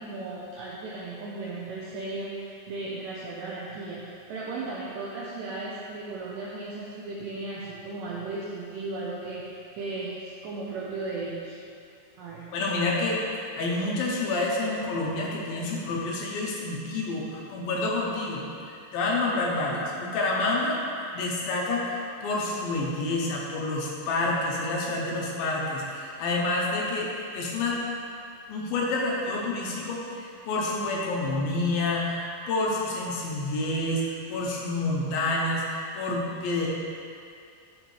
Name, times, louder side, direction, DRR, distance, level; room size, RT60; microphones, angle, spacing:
voice 1, 0.0-11.6 12.2-12.5, right 3 dB, 80° right, -5 dB, 2.0 m, -36 dB
voice 2, 12.5-20.8 21.1-27.8 28.5-36.7, left 2 dB, 75° left, -3 dB, 2.4 m, -28 dB
10.5 x 7.0 x 3.2 m, 2.5 s
omnidirectional pair, 4.7 m